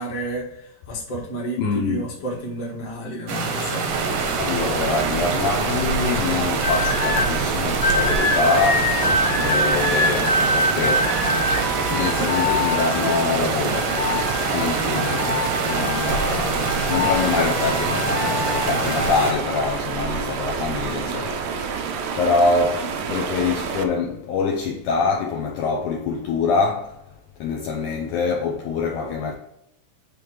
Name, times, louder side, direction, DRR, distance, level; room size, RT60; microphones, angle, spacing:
voice 1, 0.0-3.9, right 2 dB, 35° left, 1.5 m, -31 dB
voice 2, 1.6-2.1 4.3-11.1 11.9-14.0 14.5-26.9 27.4-29.4, left 4 dB, 75° left, 1.9 m, -25 dB
sound 1, 3.3-19.3, right 4 dB, 65° right, 1.5 m, -26 dB
sound 2, 3.9-23.8, right 5 dB, 85° right, 1.7 m, -28 dB
sound 3, 6.6-7.3 7.8-13.3 13.7-16.3 16.6-19.2 19.9-20.2, left 2 dB, 60° left, 2.2 m, -25 dB
9.4 x 3.4 x 3.0 m
omnidirectional pair, 4.1 m